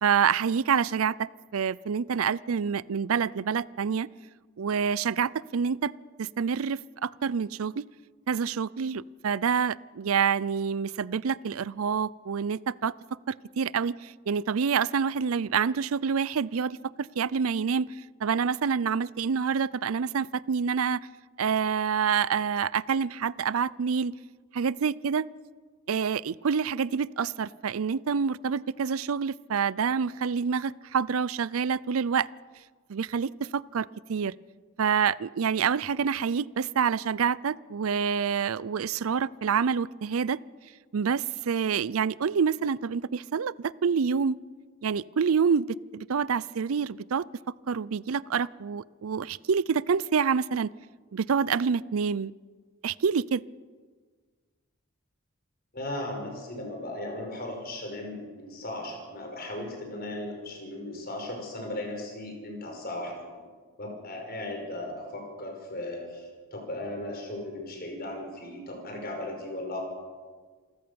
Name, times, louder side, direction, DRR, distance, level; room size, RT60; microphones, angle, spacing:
voice 1, 0.0-4.1 4.6-5.9 6.2-7.9 8.3-17.9 18.2-21.1 21.4-24.2 24.5-25.3 25.9-32.3 32.9-34.3 34.8-40.4 40.9-44.4 44.8-50.7 51.1-52.3 52.8-53.4, right 6 dB, 90° right, 21 dB, 0.5 m, -27 dB
voice 2, 55.7-63.2 63.8-69.8, left 1 dB, 45° left, 2 dB, 5.6 m, -37 dB
28.0 x 14.5 x 7.0 m, 1.5 s
head